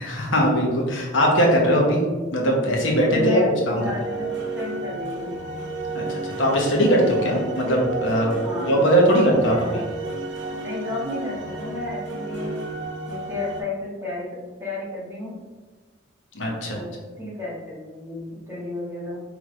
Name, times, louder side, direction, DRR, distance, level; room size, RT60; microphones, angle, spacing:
voice 1, 0.0-2.0 2.3-3.4 3.7-3.8 5.9-6.0 6.4-8.3 8.7-9.7 16.3-16.8, equal, 80° left, -1 dB, 1.0 m, -20 dB
voice 2, 2.9-5.4 8.3-10.0 10.6-12.5 13.1-14.3 14.6-15.4 16.7-19.2, left 2 dB, 15° right, -8 dB, 1.5 m, -33 dB
sound 1, 3.8-13.6, right 2 dB, 75° right, 0.9 m, -32 dB
4.9 x 3.3 x 3.2 m, 1.4 s
head